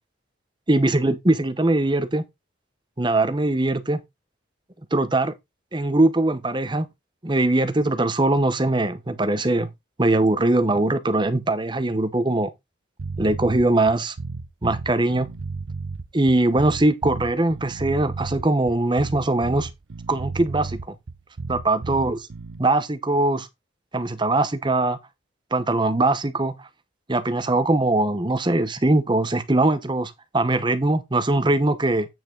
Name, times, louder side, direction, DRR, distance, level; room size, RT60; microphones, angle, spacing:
voice 1, 0.7-2.2 3.0-4.0 4.9-5.3 5.7-6.9 7.2-9.7 10.0-12.5 13.2-14.1 14.6-15.3 16.1-19.7 20.1-20.9 21.5-22.3 22.6-23.5 23.9-25.0 25.5-26.6 27.1-32.1, right 2 dB, 25° right, 0.9 m, -21 dB
sound 1, 13.0-22.6, right 3 dB, 75° right, 0.7 m, -33 dB
9.1 x 5.5 x 3.9 m
head